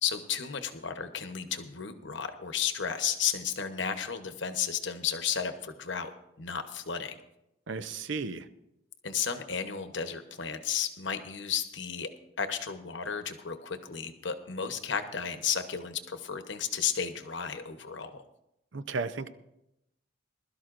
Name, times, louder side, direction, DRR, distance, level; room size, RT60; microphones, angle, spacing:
voice 1, 0.0-6.1 6.4-7.2 9.0-12.1 12.4-18.2, left 7 dB, 65° left, 8 dB, 1.0 m, -33 dB
voice 2, 7.7-8.4 18.7-19.3, right 4 dB, 70° right, 12 dB, 0.6 m, -34 dB
21.0 x 12.5 x 2.5 m, 0.85 s
head